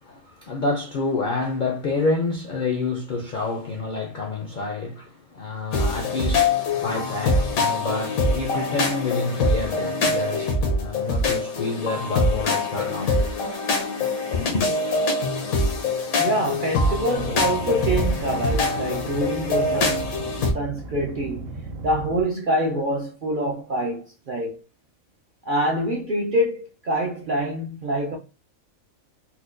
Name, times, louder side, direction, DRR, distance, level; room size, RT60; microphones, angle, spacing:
voice 1, 0.0-13.3 14.3-14.7, left 3 dB, 65° left, 0.5 m, -28 dB
sound 1, 5.7-20.5, left 2 dB, 90° left, 1.2 m, -24 dB
voice 2, 16.2-20.1 20.5-21.5 21.8-24.6 25.5-28.2, right 1 dB, 55° right, 0.5 m, -25 dB
sound 2, 17.1-22.2, right 2 dB, 80° right, 1.1 m, -36 dB
4.2 x 2.2 x 2.5 m
omnidirectional pair, 1.4 m